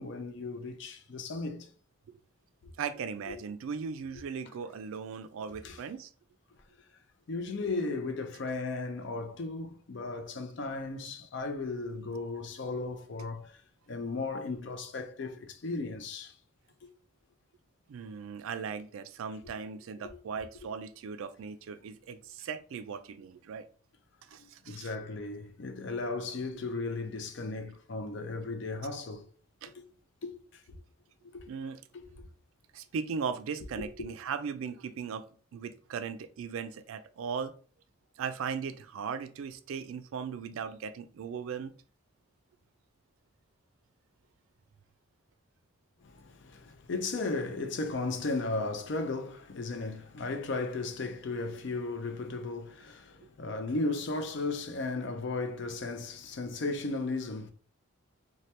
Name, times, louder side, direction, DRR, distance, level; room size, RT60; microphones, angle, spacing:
voice 1, 0.0-1.7 2.6-2.7 3.3-3.4 4.1-4.2 5.6-5.8 7.3-13.6 13.9-16.4 20.0-20.2 24.4-29.2 29.8-29.9 30.2-30.6 31.2-31.5 31.9-32.0 33.8-33.9 46.0-57.5, left 3 dB, 55° left, 0.4 m, -35 dB
voice 2, 2.8-6.1 17.9-23.7 24.3-24.9 29.6-29.7 31.5-31.8 32.7-35.3 35.5-37.5 38.2-41.7, right 6 dB, 75° right, 0.3 m, -38 dB
3.2 x 2.2 x 2.8 m
head